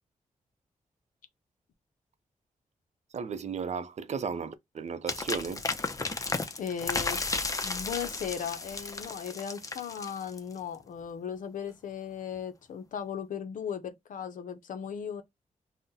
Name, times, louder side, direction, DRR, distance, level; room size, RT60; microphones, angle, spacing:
voice 1, 3.1-5.6, right 6 dB, 55° right, 0.5 m, -35 dB
sound 1, 5.1-10.6, left 3 dB, 25° left, 0.5 m, -34 dB
voice 2, 6.6-7.2 7.6-15.2, left 7 dB, 80° left, 0.5 m, -37 dB
2.6 x 2.1 x 3.7 m
cardioid pair, 85°, 14 cm